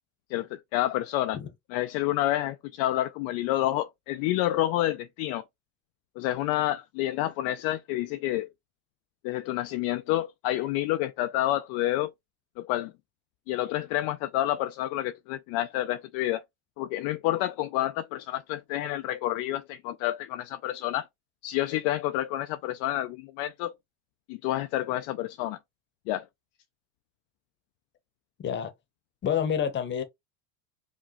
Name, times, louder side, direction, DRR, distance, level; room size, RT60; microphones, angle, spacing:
voice 1, 0.3-1.4 1.7-5.4 6.2-8.5 9.2-12.1 12.6-12.9 13.5-16.4 16.8-21.1 21.4-23.7 24.3-25.6 26.1-26.2, left 14 dB, 55° left, 0.5 m, -29 dB
voice 2, 28.4-28.7 29.2-30.0, left 8 dB, 30° left, 0.9 m, -28 dB
4.9 x 2.3 x 2.9 m
supercardioid pair, 115°, 41 cm